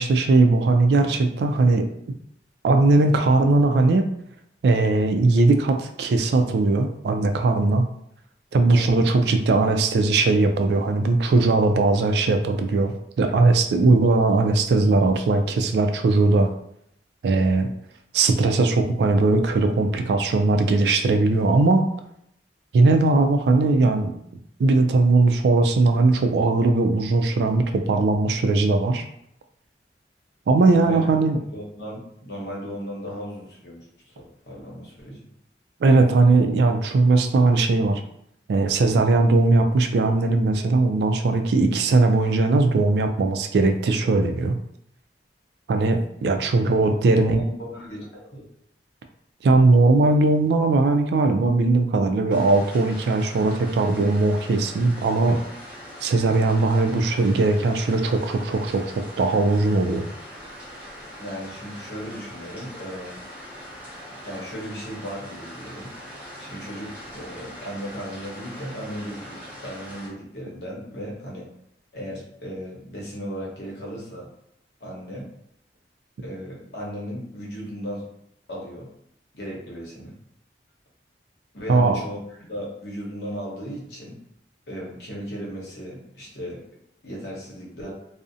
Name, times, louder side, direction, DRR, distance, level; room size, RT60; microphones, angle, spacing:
voice 1, 0.0-1.9 2.6-4.0 4.6-7.9 8.5-16.5 17.2-17.7 18.1-21.9 22.7-24.1 24.6-29.1 30.5-31.4 35.8-38.0 38.5-44.5 45.7-47.4 49.4-55.4 56.0-60.1 81.7-82.0, right 3 dB, 65° right, 6 dB, 0.3 m, -19 dB
voice 2, 8.7-9.1 30.7-31.1 31.5-35.2 46.6-48.4 61.1-63.2 64.2-65.9 66.4-71.5 71.9-74.3 74.8-75.3 76.2-78.1 78.5-78.9 79.3-80.1 81.5-84.2 84.7-86.6 87.0-87.9, equal, 70° left, -3 dB, 0.8 m, -36 dB
sound 1, 52.3-70.1, equal, 10° right, 0.5 m, -41 dB
2.4 x 2.0 x 2.6 m, 0.73 s
head